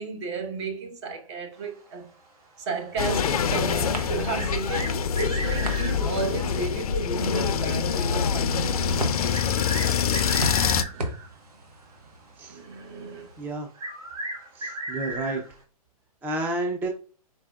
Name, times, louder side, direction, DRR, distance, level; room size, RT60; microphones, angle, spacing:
voice 1, 0.0-2.1 2.7-9.9 10.9-11.2 12.5-13.3, right 4 dB, 45° right, 1.1 m, -34 dB
sound 1, 2.4-13.5, right 1 dB, 85° right, 1.1 m, -39 dB
sound 2, 3.0-10.8, left 7 dB, 75° left, 0.5 m, -25 dB
sound 3, 4.4-6.0 7.8-7.9 9.3-11.3 13.7-15.5, right 1 dB, 70° right, 1.7 m, -35 dB
voice 2, 13.4-13.7 14.6-15.4 16.2-16.9, right 2 dB, 10° right, 0.5 m, -30 dB
4.8 x 4.3 x 2.3 m
hypercardioid pair, 125°, 19 cm